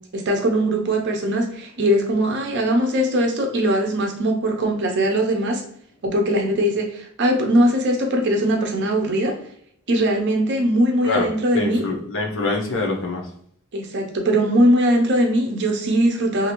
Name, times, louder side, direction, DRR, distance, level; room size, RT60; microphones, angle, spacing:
voice 1, 0.1-5.6 6.0-9.4 9.9-11.8 13.7-16.5, right 1 dB, 50° right, 2 dB, 0.6 m, -20 dB
voice 2, 11.0-13.2, left 3 dB, 60° left, 1 dB, 0.7 m, -25 dB
2.7 x 2.5 x 2.9 m, 0.64 s
head